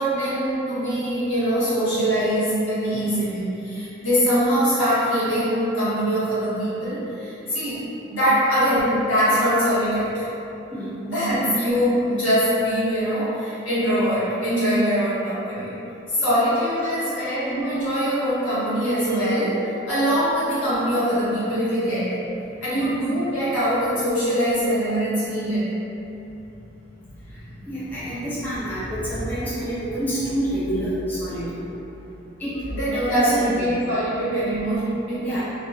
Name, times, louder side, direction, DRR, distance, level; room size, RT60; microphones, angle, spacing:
voice 1, 0.0-7.8 8.1-10.3 11.0-15.7 16.1-22.2 22.6-25.7 32.7-35.3, equal, 70° left, -13 dB, 1.3 m, -23 dB
voice 2, 27.3-31.7 32.4-33.6 35.2-35.4, right 1 dB, 10° left, -12 dB, 0.6 m, -28 dB
2.7 x 2.7 x 2.4 m, 2.9 s
head